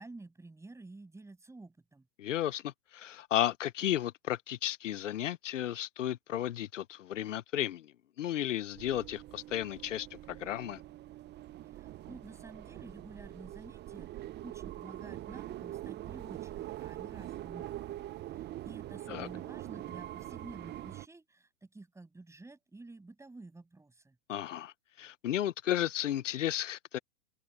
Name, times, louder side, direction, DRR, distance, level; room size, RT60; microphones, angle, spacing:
voice 1, 0.0-2.1 11.7-18.1 18.3-24.2, right 2 dB, 10° right, 7.9 m, -51 dB
voice 2, 2.2-10.8 19.1-19.3 24.3-27.0, left 12 dB, 75° left, 1.1 m, -34 dB
sound 1, 8.7-21.1, right 14 dB, 25° right, 1.1 m, -44 dB
hypercardioid pair, 110°, 37 cm